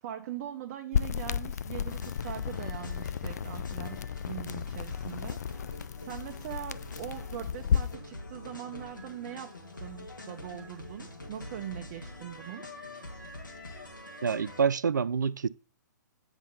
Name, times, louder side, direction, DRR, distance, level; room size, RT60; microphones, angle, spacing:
voice 1, 0.0-5.4 6.0-12.7, right 11 dB, 40° right, 0.7 m, -41 dB
sound 1, 0.9-8.0, left 8 dB, 55° left, 0.3 m, -33 dB
sound 2, 1.9-14.6, left 2 dB, 80° left, 1.9 m, -45 dB
voice 2, 14.2-15.5, right 6 dB, 70° right, 0.4 m, -27 dB
9.0 x 3.6 x 5.4 m
figure-of-eight pair, 120°, 10 cm